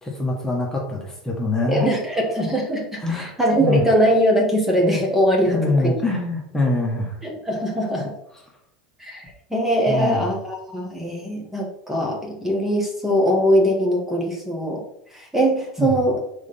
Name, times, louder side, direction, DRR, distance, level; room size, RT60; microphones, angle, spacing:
voice 1, 0.0-1.8 3.0-3.3 3.6-3.8 5.4-7.2 9.9-10.3 15.8-15.9, left 2 dB, 15° left, -1 dB, 1.8 m, -24 dB
voice 2, 1.7-5.9 7.2-8.1 9.0-14.8 15.1-16.2, equal, 5° right, -1 dB, 1.8 m, -21 dB
4.8 x 4.3 x 5.6 m, 0.76 s
hypercardioid pair, 95°, 4 cm